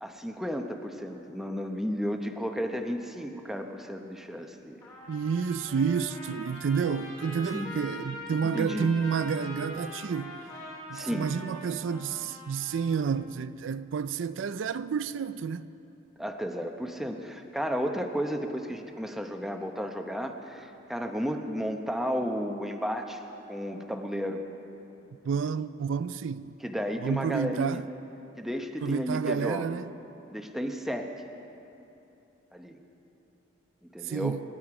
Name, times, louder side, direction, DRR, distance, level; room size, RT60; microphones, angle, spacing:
voice 1, 0.0-4.8 7.5-7.7 8.4-8.9 10.9-11.3 16.2-23.2 23.5-24.4 26.6-27.8 28.4-29.7 30.3-31.1 32.5-32.8 33.9-34.4, equal, ahead, 0.8 m, -33 dB
Trumpet, 4.8-13.0, equal, 20° left, 2.7 m, -43 dB
voice 2, 5.1-10.4 10.9-15.7 25.2-26.5 27.0-27.9 28.8-29.9 34.0-34.4, right 6 dB, 75° right, 0.4 m, -30 dB
25.5 x 11.5 x 4.9 m
head